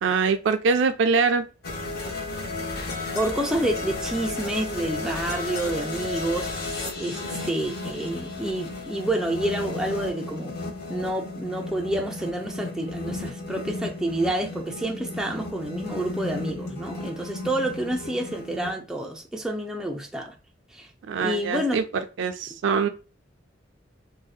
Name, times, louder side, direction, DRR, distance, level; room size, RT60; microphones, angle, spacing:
voice 1, 0.0-1.5 21.1-21.8 22.2-22.9, right 5 dB, 85° right, 0.3 m, -23 dB
sound 1, 1.6-18.7, left 2 dB, 60° left, 0.5 m, -34 dB
voice 2, 3.1-10.6 10.9-20.3 20.7-20.9 21.2-21.8, right 1 dB, 5° right, 0.3 m, -29 dB
2.6 x 2.1 x 2.3 m
head